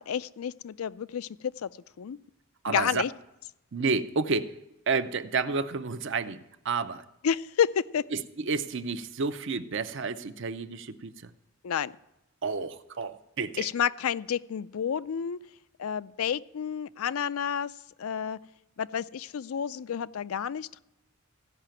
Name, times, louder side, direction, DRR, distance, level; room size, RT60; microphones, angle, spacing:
voice 1, 0.0-1.7 2.0-2.2 2.7-3.1 7.2-8.0 11.6-11.9 13.6-15.4 15.8-17.7 18.0-18.4 18.8-20.8, left 8 dB, 80° left, 16 dB, 0.4 m, -30 dB
voice 2, 2.6-3.0 3.7-4.5 4.9-7.0 8.1-11.3 12.4-13.7, right 4 dB, 55° right, 12 dB, 0.6 m, -30 dB
15.0 x 5.7 x 8.9 m, 0.88 s
head